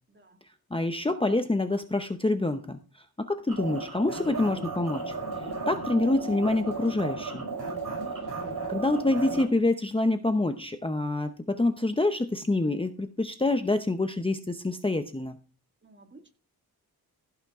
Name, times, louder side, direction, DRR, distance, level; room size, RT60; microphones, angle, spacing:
voice 1, 0.7-5.1 5.7-7.5 8.7-15.4, left 2 dB, 15° left, 0.7 m, -27 dB
sound 1, 3.5-9.4, right 3 dB, 60° right, 5.7 m, -34 dB
voice 2, 15.8-16.3, right 3 dB, 30° right, 2.1 m, -53 dB
15.5 x 5.9 x 4.8 m
wide cardioid pair, 125°, 38 cm